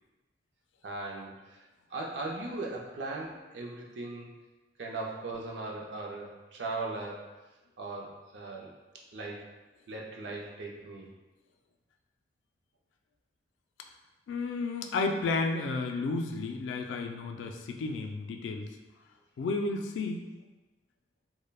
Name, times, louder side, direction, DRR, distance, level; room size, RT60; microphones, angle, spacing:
voice 1, 0.8-1.6 1.9-4.3 4.8-7.3 7.8-8.7 9.1-9.5 9.9-11.1, right 2 dB, 75° right, -1 dB, 0.5 m, -38 dB
voice 2, 14.3-18.7 19.4-20.3, left 3 dB, 90° left, 4 dB, 0.3 m, -32 dB
3.2 x 2.1 x 2.2 m, 1.1 s
head